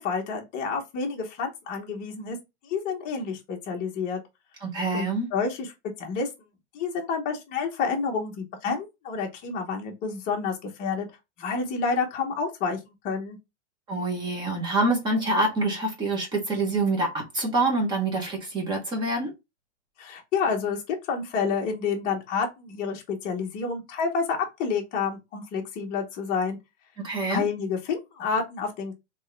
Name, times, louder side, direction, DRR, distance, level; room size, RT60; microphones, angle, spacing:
voice 1, 0.0-2.4 2.6-4.2 4.9-5.7 6.0-6.3 6.7-11.1 11.4-13.4 20.0-26.6 27.3-28.9, left 5 dB, 25° left, 1.0 m, -29 dB
voice 2, 4.6-5.3 13.9-19.3 27.0-27.4, right 2 dB, 10° right, 1.0 m, -26 dB
3.6 x 3.0 x 3.2 m
supercardioid pair, 165°, 36 cm